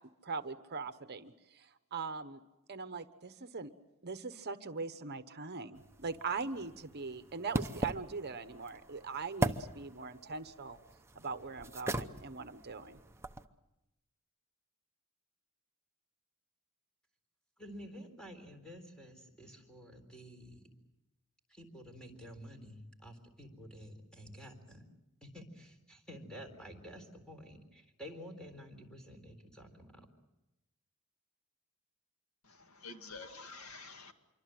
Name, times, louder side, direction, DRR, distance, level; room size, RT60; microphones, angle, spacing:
voice 1, 0.2-2.4 2.7-3.7 4.0-10.8 11.1-13.0, right 4 dB, 45° right, 10 dB, 1.1 m, -41 dB
sound 1, 5.8-13.5, right 1 dB, 10° right, 0.8 m, -40 dB
voice 2, 17.6-20.6 21.5-24.8 25.2-30.1, equal, 5° left, 4 dB, 3.9 m, -50 dB
voice 3, 32.4-34.1, left 3 dB, 70° left, 6 dB, 2.1 m, -49 dB
26.5 x 24.0 x 7.8 m, 0.96 s
head